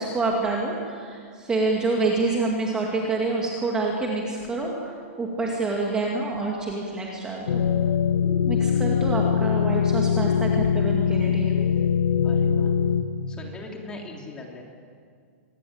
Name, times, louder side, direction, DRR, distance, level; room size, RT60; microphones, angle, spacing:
voice 1, 0.0-7.6 8.5-11.5, right 3 dB, 10° right, -1 dB, 2.3 m, -27 dB
sound 1, 7.5-13.0, left 7 dB, 85° left, 1.7 m, -22 dB
voice 2, 12.2-12.7 13.3-14.6, left 2 dB, 10° left, 0 dB, 3.2 m, -40 dB
25.5 x 20.5 x 8.8 m, 2.1 s
supercardioid pair, 175°, 8 cm